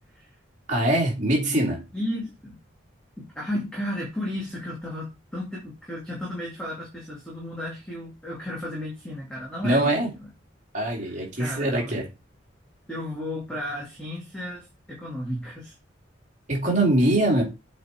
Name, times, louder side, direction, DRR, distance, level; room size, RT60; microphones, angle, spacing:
voice 1, 0.7-1.8 9.6-10.1 10.7-12.1 16.5-17.4, right 1 dB, 40° right, 3.3 m, -22 dB
voice 2, 1.9-2.6 3.2-9.9 11.0-12.0 12.9-15.7, left 1 dB, 5° left, 2.6 m, -34 dB
8.1 x 4.2 x 4.6 m
head